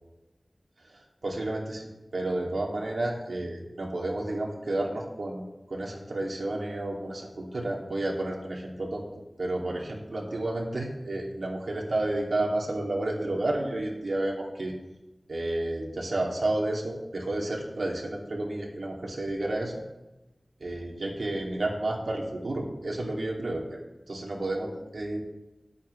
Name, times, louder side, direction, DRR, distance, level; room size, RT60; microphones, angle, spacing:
voice 1, 0.9-9.0 9.4-14.7 15.3-19.7 20.6-23.8 24.1-25.2, right 2 dB, 90° right, -1 dB, 2.6 m, -31 dB
20.5 x 8.2 x 3.3 m, 1.0 s
wide cardioid pair, 65°, 0 cm